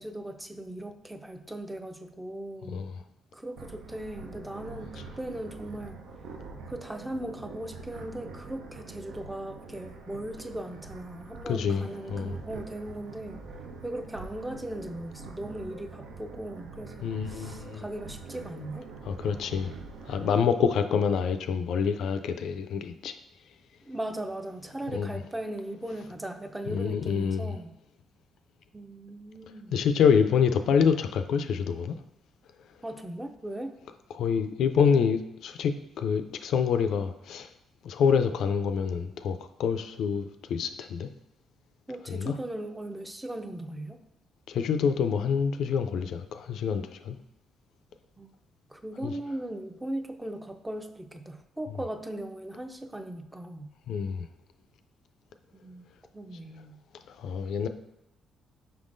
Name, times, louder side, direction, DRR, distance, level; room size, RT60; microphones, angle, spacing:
voice 1, 0.0-2.8 3.3-6.0 6.7-13.4 13.8-18.9 23.8-27.7 28.7-29.8 32.8-33.8 41.9-44.0 48.2-48.3 48.7-53.7 55.5-55.9 56.1-56.8, right 1 dB, 10° right, 6 dB, 0.5 m, -38 dB
voice 2, 2.7-3.0 11.5-12.3 17.0-17.8 19.1-19.7 20.1-23.2 24.9-25.2 26.7-27.6 29.7-32.0 34.1-37.5 37.8-41.1 42.1-42.4 44.5-47.2 49.0-49.1 53.9-54.3 57.2-57.7, left 6 dB, 75° left, 9 dB, 0.3 m, -27 dB
sound 1, 3.6-20.3, right 4 dB, 90° right, 0.5 m, -44 dB
5.7 x 3.6 x 2.5 m, 0.85 s
cardioid pair, 90°, 0 cm